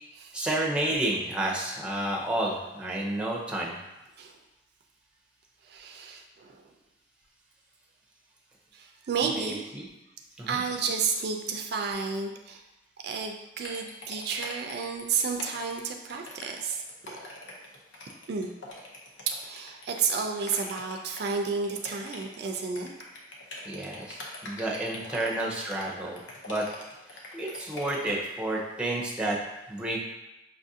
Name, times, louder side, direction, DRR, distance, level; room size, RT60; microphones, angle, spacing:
voice 1, 0.3-3.8 9.3-9.9 10.4-10.6 23.7-26.7 27.1-29.4 29.7-30.0, right 1 dB, 5° right, -2 dB, 0.6 m, -31 dB
voice 2, 5.6-6.6 8.7-9.7 10.5-12.6 13.0-17.2 18.3-18.5 19.3-22.9, right 5 dB, 60° right, 3 dB, 0.4 m, -31 dB
sound 1, 13.6-28.3, left 2 dB, 85° left, 0.8 m, -43 dB
5.9 x 2.4 x 2.7 m, 0.97 s
head